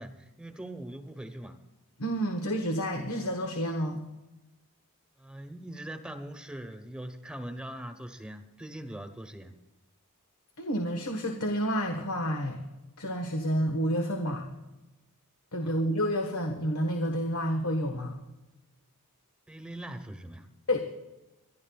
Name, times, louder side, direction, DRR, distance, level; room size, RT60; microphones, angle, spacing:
voice 1, 0.0-1.6 5.2-9.5 15.6-15.8 19.5-20.5, right 1 dB, 5° right, 6 dB, 1.1 m, -42 dB
voice 2, 2.0-4.0 10.6-12.6 13.0-14.5 15.5-18.2 20.7-20.8, equal, 85° left, 3 dB, 1.5 m, -29 dB
27.5 x 12.0 x 2.4 m, 1.0 s
head